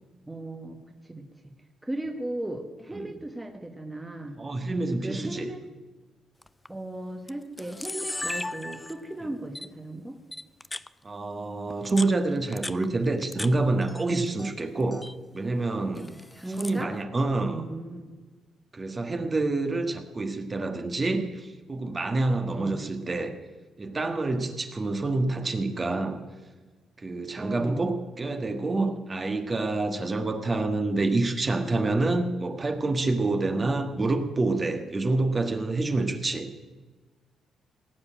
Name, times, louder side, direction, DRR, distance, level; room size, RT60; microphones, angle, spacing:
voice 1, 0.3-0.8 1.1-1.3 1.8-4.4 5.0-5.6 6.7-10.2 16.4-16.9 17.5-18.1 22.6-22.8 27.4-27.9 33.4-33.7, right 1 dB, 10° right, 4 dB, 1.3 m, -36 dB
voice 2, 4.4-5.5 9.2-9.3 11.0-15.1 15.3-16.2 16.6-17.6 18.7-23.4 23.8-26.2 27.0-36.5, right 2 dB, 30° right, 6 dB, 1.5 m, -27 dB
Camera, 6.4-6.7 7.3-7.4 7.6-9.1 9.6-9.7 10.3-10.9 11.7-13.5 13.8-14.5 14.8-15.2 16.0-16.8, left 2 dB, 15° left, 0.5 m, -36 dB
17.5 x 7.1 x 9.1 m, 1.3 s
cardioid pair, 90°, 0 cm